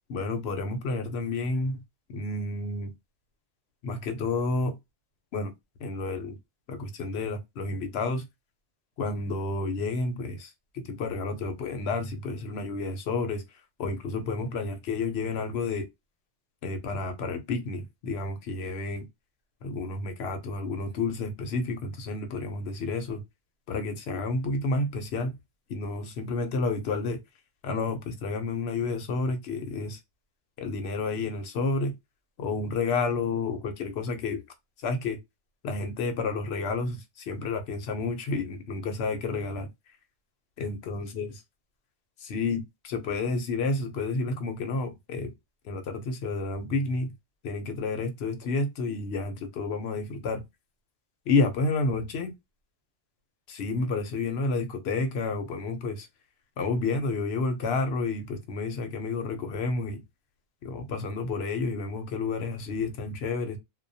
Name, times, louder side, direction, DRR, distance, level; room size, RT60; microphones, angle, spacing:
voice 1, 0.1-1.8 2.1-2.9 3.8-4.7 5.3-5.5 5.8-6.4 6.7-8.2 9.0-13.4 13.8-15.9 16.6-19.1 19.6-23.2 23.7-25.3 25.7-27.2 27.6-30.0 30.6-31.9 32.4-34.4 34.8-35.2 35.6-39.7 40.6-41.3 42.2-45.3 45.6-47.1 47.4-50.4 51.3-52.3 53.5-56.1 56.6-60.0 60.6-63.6, left 3 dB, 75° left, 0.9 m, -30 dB
2.2 x 2.1 x 2.6 m
omnidirectional pair, 1.1 m